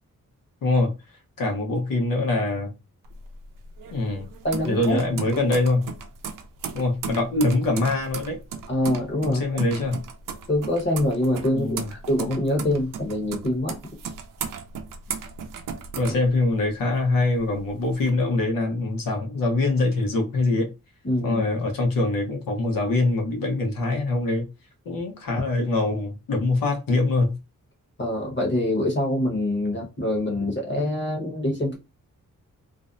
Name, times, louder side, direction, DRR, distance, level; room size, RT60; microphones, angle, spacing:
voice 1, 0.6-0.9 1.4-2.7 3.9-4.3 4.6-5.9 6.7-8.4 9.2-10.0 11.5-11.9 16.0-20.7 21.2-24.5 24.9-27.4, left 2 dB, 80° left, 0.9 m, -23 dB
sound 1, 3.0-16.9 17.3-18.1, right 6 dB, 70° right, 0.5 m, -36 dB
voice 2, 4.4-5.0 5.3-5.4 8.7-9.4 10.5-13.8 21.0-21.4 28.0-31.8, left 1 dB, 35° left, 1.1 m, -25 dB
2.6 x 2.0 x 2.5 m
cardioid pair, 85°, 34 cm